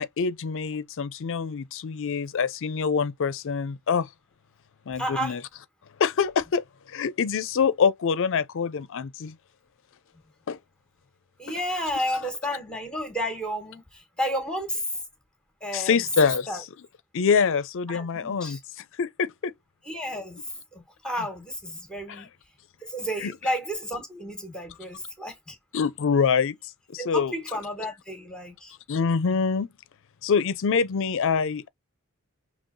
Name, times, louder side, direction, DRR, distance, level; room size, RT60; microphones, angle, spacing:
voice 1, 0.0-4.1 4.9-5.4 6.0-9.3 10.5-10.6 15.7-16.5 17.1-19.5 22.1-22.2 23.2-23.3 25.7-26.6 26.9-27.3 28.9-29.7 30.2-31.7, left 6 dB, 60° left, 0.5 m, -25 dB
voice 2, 5.0-5.4 11.4-14.8 15.6-16.0 16.5-16.6 17.9-18.6 19.8-20.4 20.7-22.3 22.8-25.6 27.0-28.7, equal, 5° left, 1.4 m, -32 dB
5.3 x 3.0 x 2.6 m
head